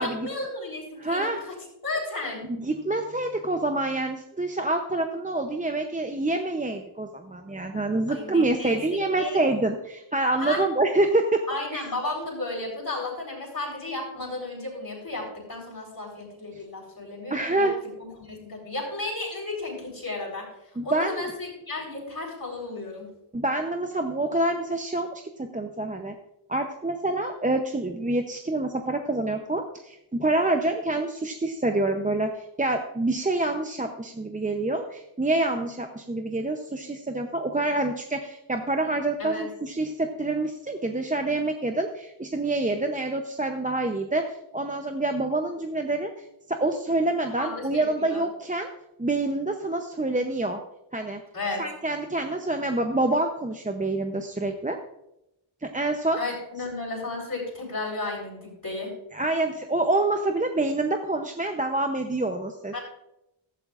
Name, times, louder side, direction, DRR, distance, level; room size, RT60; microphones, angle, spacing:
voice 1, 0.0-1.5 1.8-2.5 8.1-9.4 10.3-10.6 11.5-17.7 18.0-20.5 20.8-23.1 39.2-39.5 47.4-48.2 51.3-51.6 56.2-58.9 62.7-62.8, left 2 dB, 45° left, -2 dB, 4.0 m, -33 dB
voice 2, 1.0-1.4 2.6-11.4 11.7-11.8 16.5-16.6 17.3-17.8 20.8-21.3 23.3-26.1 26.5-48.7 49.0-50.6 50.9-51.2 51.6-54.8 55.6-56.2 59.1-62.8, right 2 dB, 15° right, 4 dB, 0.7 m, -27 dB
15.0 x 12.5 x 2.5 m, 0.86 s
wide cardioid pair, 105°, 48 cm